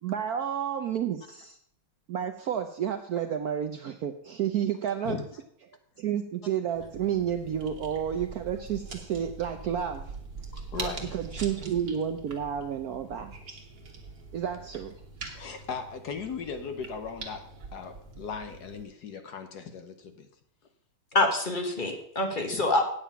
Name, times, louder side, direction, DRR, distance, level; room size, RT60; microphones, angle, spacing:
voice 1, 0.0-1.6 2.1-5.2 6.0-10.1 10.8-13.6 14.3-14.9, right 9 dB, 65° right, 7 dB, 0.9 m, -31 dB
sound 1, 6.7-18.8, right 4 dB, 50° right, 1.9 m, -43 dB
voice 2, 10.7-11.2 15.3-17.4 17.7-20.3 22.5-22.6, left 5 dB, 60° left, 7 dB, 1.3 m, -37 dB
voice 3, 21.1-22.8, left 2 dB, 30° left, 4 dB, 1.2 m, -26 dB
9.0 x 8.4 x 5.6 m, 0.67 s
omnidirectional pair, 2.2 m